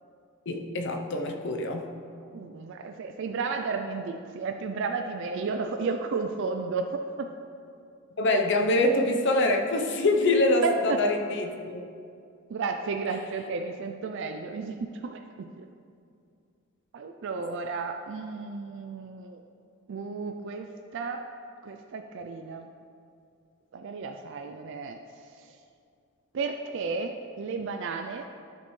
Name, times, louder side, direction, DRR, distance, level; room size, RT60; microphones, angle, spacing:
voice 1, 0.5-1.9 8.2-11.8, left 2 dB, 55° left, 3 dB, 0.7 m, -25 dB
voice 2, 2.2-7.3 10.6-11.1 12.5-15.7 16.9-19.4 19.9-21.2 21.6-22.7 23.7-25.6 26.3-28.3, right 4 dB, 60° right, 5 dB, 0.4 m, -33 dB
12.0 x 5.3 x 3.2 m, 2.4 s
head